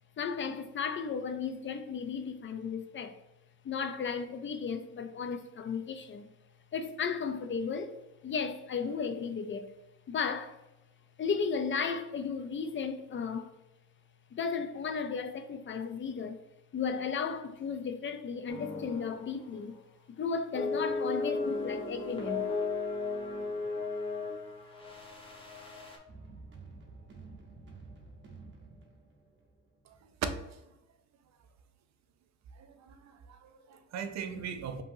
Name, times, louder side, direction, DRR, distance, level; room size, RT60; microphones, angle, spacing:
voice 1, 0.2-3.2 3.6-6.3 6.7-8.0 8.2-9.7 10.1-10.6 11.2-13.5 14.3-16.4 16.7-19.7 20.1-22.5, left 6 dB, 40° left, 0.5 m, -34 dB
sound 1, 18.5-19.3 19.6-19.8 20.5-26.0, left 3 dB, 15° left, 1.1 m, -35 dB
sound 2, 26.1-30.1, right 3 dB, 40° right, 1.0 m, -51 dB
voice 2, 32.6-34.8, right 7 dB, 65° right, 0.6 m, -41 dB
5.4 x 2.8 x 2.7 m
cardioid pair, 90°, 30 cm